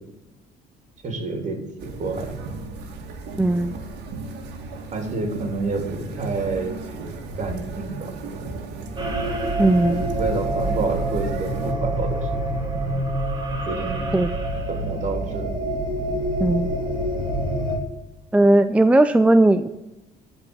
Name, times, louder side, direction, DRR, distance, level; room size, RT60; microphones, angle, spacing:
voice 1, 1.0-1.6 2.0-2.3 4.9-6.8 7.4-8.5 10.1-12.3 13.7-14.1 14.7-15.5, right 3 dB, 45° right, 4 dB, 3.4 m, -28 dB
sound 1, 1.8-11.7, right 3 dB, 90° right, 2.4 m, -35 dB
voice 2, 3.4-3.7 9.6-10.1 14.1-14.3 16.4-16.7 18.3-19.7, right 2 dB, 5° right, 9 dB, 0.5 m, -17 dB
sound 2, 9.0-17.8, right 1 dB, 25° right, 2.7 m, -26 dB
13.0 x 5.4 x 8.6 m, 0.97 s
cardioid pair, 110°, 17 cm